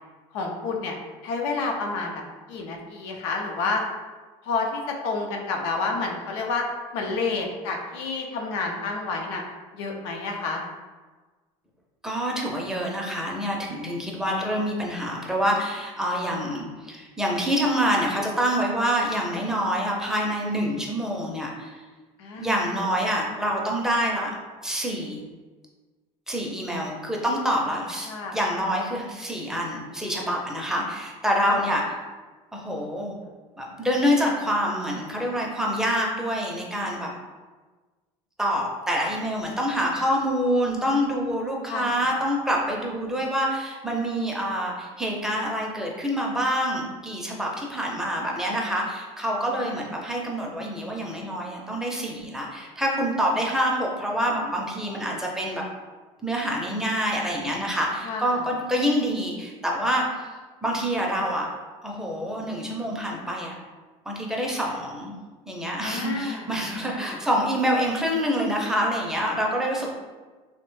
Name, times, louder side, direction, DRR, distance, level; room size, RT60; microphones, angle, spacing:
voice 1, 0.3-1.0 1.2-3.8 4.4-6.7 6.9-9.4 9.7-10.6 22.2-22.5 28.1-28.4 31.4-31.6 41.7-42.0 49.5-49.8 58.0-58.4 65.8-67.2, left 4 dB, 85° left, 1 dB, 0.5 m, -30 dB
voice 2, 12.0-21.8 22.4-24.4 24.6-25.2 26.3-31.8 32.5-33.1 33.6-37.1 38.4-55.6 56.2-60.3 60.6-61.5 61.8-63.6 64.1-65.2 65.5-69.9, equal, 5° right, -2 dB, 0.5 m, -26 dB
2.9 x 2.1 x 3.1 m, 1.3 s
supercardioid pair, 120°, 14 cm